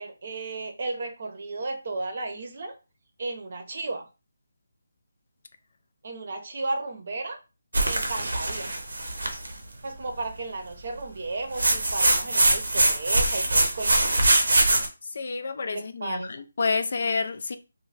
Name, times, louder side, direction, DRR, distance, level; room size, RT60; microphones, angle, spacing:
voice 1, 0.0-2.8 3.2-4.1 6.0-7.4 7.8-8.7 9.8-14.1 15.7-16.3, right 3 dB, 50° right, 0.7 m, -34 dB
sound 1, 7.7-9.5 11.6-14.9, right 2 dB, 80° right, 0.7 m, -22 dB
voice 2, 15.0-17.6, left 4 dB, 55° left, 0.3 m, -29 dB
2.6 x 2.2 x 3.2 m
figure-of-eight pair, 165°, 0 cm